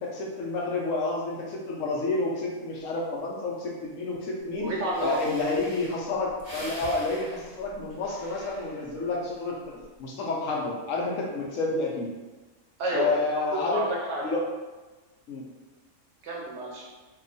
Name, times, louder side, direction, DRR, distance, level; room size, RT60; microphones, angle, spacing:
voice 1, 0.0-4.7 5.0-12.1 12.9-13.8 14.2-14.5 15.3-15.5, left 3 dB, 70° left, -1 dB, 1.0 m, -30 dB
Breathing, 4.6-4.7 4.9-9.1 9.6-10.0, equal, 15° left, 0.7 m, -44 dB
voice 2, 4.6-5.2 12.8-13.4 13.7-14.2 16.2-16.9, right 2 dB, 65° right, -3 dB, 0.8 m, -30 dB
2.8 x 2.3 x 3.8 m, 1.2 s
omnidirectional pair, 1.5 m